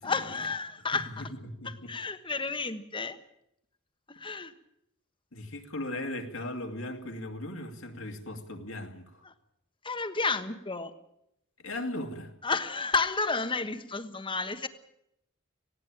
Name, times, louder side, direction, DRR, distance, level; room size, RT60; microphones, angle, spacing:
voice 1, 0.0-1.3 1.6-3.2 4.1-4.5 9.2-9.3 9.8-10.9 12.4-14.7, left 4 dB, 25° left, 10 dB, 1.3 m, -31 dB
voice 2, 1.4-1.9 5.3-9.2 11.6-12.3, left 1 dB, 80° left, 3 dB, 2.5 m, -38 dB
19.0 x 16.5 x 9.0 m, 0.78 s
head